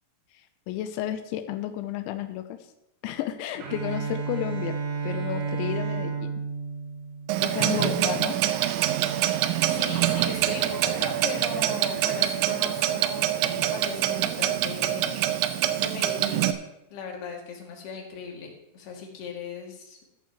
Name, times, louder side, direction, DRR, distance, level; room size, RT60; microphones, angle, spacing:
voice 1, 0.3-2.6 3.0-4.8 5.0-6.3 7.4-8.3, left 11 dB, 85° left, 8 dB, 2.7 m, -32 dB
Bowed string instrument, 3.6-7.6, right 5 dB, 70° right, 4.1 m, -32 dB
Clock, 7.3-16.5, right 12 dB, 90° right, 2.7 m, -25 dB
voice 2, 7.7-8.0 9.6-15.4 15.8-16.5 16.9-20.0, left 5 dB, 55° left, 0 dB, 4.0 m, -38 dB
14.0 x 13.5 x 3.1 m, 0.90 s
omnidirectional pair, 5.9 m